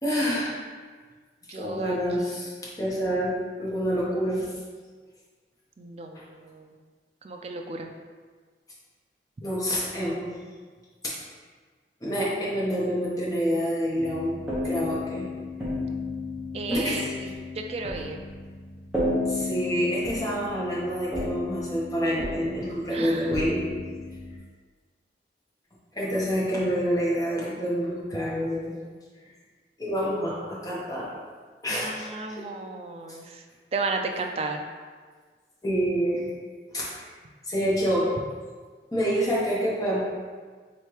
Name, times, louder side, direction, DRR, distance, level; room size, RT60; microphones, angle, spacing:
voice 1, 0.0-0.6 1.5-4.5 9.4-10.3 11.0-11.2 12.0-15.3 16.7-17.1 19.3-23.6 25.9-28.7 29.8-31.1 31.6-32.5 35.6-36.3 36.7-37.0 37.4-38.1 38.9-40.0, equal, 20° left, -7 dB, 1.0 m, -27 dB
voice 2, 1.5-2.0 5.8-6.7 7.2-7.9 16.5-18.2 22.9-23.2 31.8-33.4 33.7-34.6, right 3 dB, 35° right, 3 dB, 0.3 m, -33 dB
sound 1, 13.9-24.4, left 2 dB, 5° right, 1.0 m, -33 dB
3.2 x 3.0 x 4.7 m, 1.5 s
head